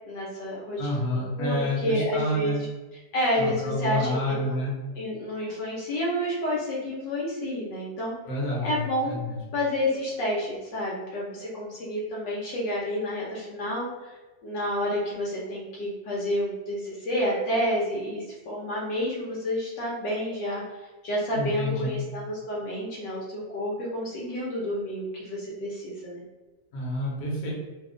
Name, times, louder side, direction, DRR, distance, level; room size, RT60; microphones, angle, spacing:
voice 1, 0.1-2.7 3.1-4.7 4.9-8.1 8.6-9.2 9.5-14.2 14.4-20.6 21.0-26.2, left 1 dB, 70° left, -5 dB, 1.4 m, -29 dB
voice 2, 0.8-2.6 3.4-4.7 8.3-9.4 21.3-22.0 26.7-27.5, left 1 dB, 55° left, -4 dB, 1.2 m, -29 dB
3.2 x 2.3 x 3.7 m, 1.2 s
omnidirectional pair, 2.0 m